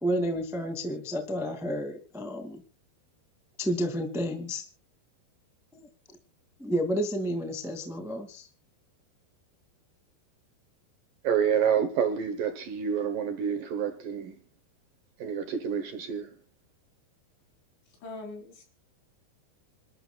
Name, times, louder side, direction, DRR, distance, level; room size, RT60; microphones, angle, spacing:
voice 1, 0.0-2.6 3.6-4.6 5.7-5.9 6.6-8.5, equal, ahead, 0.7 m, -31 dB
voice 2, 11.2-14.3 15.2-16.3, right 7 dB, 65° right, 2.3 m, -28 dB
voice 3, 17.9-18.6, left 3 dB, 80° left, 6.9 m, -42 dB
27.0 x 12.5 x 2.4 m
omnidirectional pair, 5.1 m